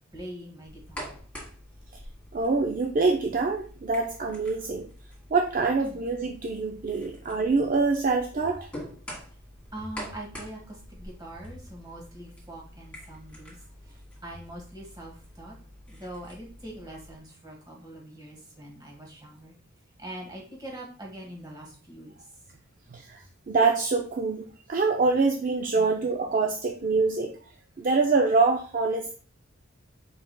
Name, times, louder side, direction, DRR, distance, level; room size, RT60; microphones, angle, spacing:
voice 1, 0.1-1.2 5.8-6.0 6.9-7.1 9.7-13.5 13.8-15.5 15.9-19.5 20.0-22.2 25.7-25.9 27.7-27.9, right 1 dB, 20° right, -1 dB, 1.5 m, -43 dB
sound 1, 0.7-17.2, equal, 5° left, 1.7 m, -46 dB
voice 2, 2.3-4.9 5.3-8.7 22.9-23.2 23.5-27.4 27.8-29.1, right 4 dB, 40° right, 3 dB, 0.4 m, -25 dB
4.8 x 4.7 x 2.2 m, 0.39 s
head